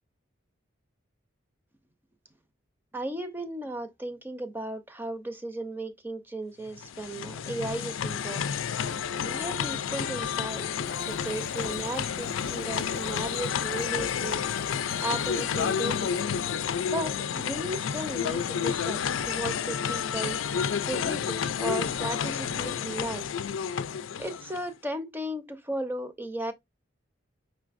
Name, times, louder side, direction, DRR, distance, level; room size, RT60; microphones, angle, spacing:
voice 1, 2.9-8.4 9.2-10.6 11.1-14.4 15.0-16.1 16.9-20.4 20.9-23.3 24.2-26.5, right 1 dB, 10° right, 0.6 m, -35 dB
sound 1, 6.7-24.7, left 7 dB, 80° left, 0.4 m, -30 dB
Sink (filling or washing), 10.4-17.2, left 4 dB, 50° left, 0.8 m, -45 dB
5.9 x 3.3 x 2.5 m
head